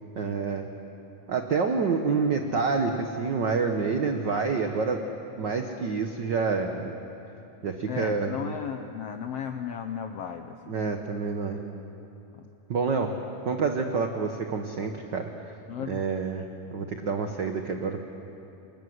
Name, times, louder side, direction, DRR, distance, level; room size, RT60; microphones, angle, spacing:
voice 1, 0.2-0.7 1.3-5.0 5.4-7.0 7.6-8.5 10.7-11.6 12.7-15.3 15.8-16.4 16.7-18.0, right 4 dB, 85° right, 5 dB, 0.9 m, -28 dB
voice 2, 7.9-10.8 12.3-12.5 15.7-16.0, left 8 dB, 75° left, 6 dB, 1.4 m, -35 dB
28.0 x 20.5 x 7.9 m, 2.9 s
omnidirectional pair, 3.7 m